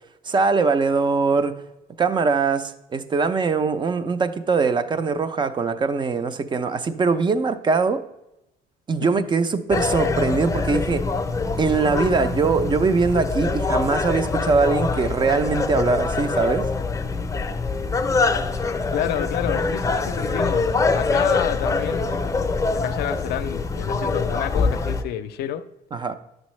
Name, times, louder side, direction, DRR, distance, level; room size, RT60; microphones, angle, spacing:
voice 1, 0.2-1.6 2.0-8.0 8.9-11.1 11.6-16.7 25.9-26.1, right 4 dB, 25° right, 0.5 m, -22 dB
sound 1, 9.7-25.0, left 3 dB, 20° left, 0.6 m, -24 dB
voice 2, 18.9-20.7 20.9-22.3 22.7-25.6, left 11 dB, 70° left, 0.5 m, -29 dB
9.4 x 6.3 x 3.1 m
cardioid pair, 110°, 17 cm